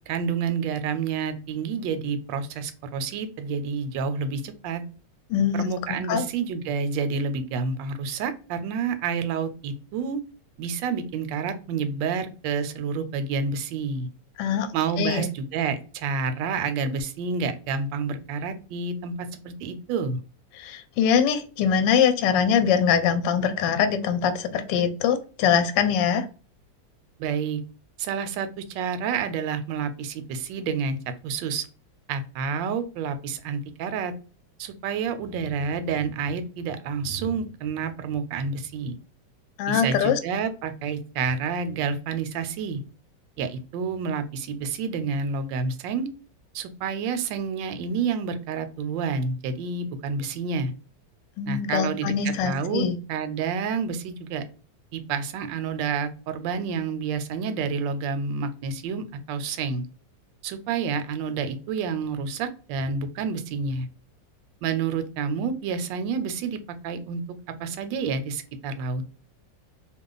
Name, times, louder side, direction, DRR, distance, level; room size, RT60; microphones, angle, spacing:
voice 1, 0.1-4.8 5.5-10.2 10.6-14.1 14.7-20.2 27.2-27.6 28.0-31.0 31.2-31.7 32.1-34.1 34.6-39.0 39.7-42.8 43.4-46.1 46.5-50.7 51.5-54.4 54.9-59.8 60.4-63.9 64.6-67.2 67.6-69.0, right 5 dB, 80° right, 10 dB, 1.2 m, -29 dB
voice 2, 5.3-5.7 6.1-6.2 14.4-14.7 15.0-15.3 20.6-26.2 39.6-40.2 51.4-53.0, left 7 dB, 75° left, 8 dB, 1.2 m, -23 dB
2.9 x 2.2 x 3.8 m, 0.36 s
omnidirectional pair, 2.0 m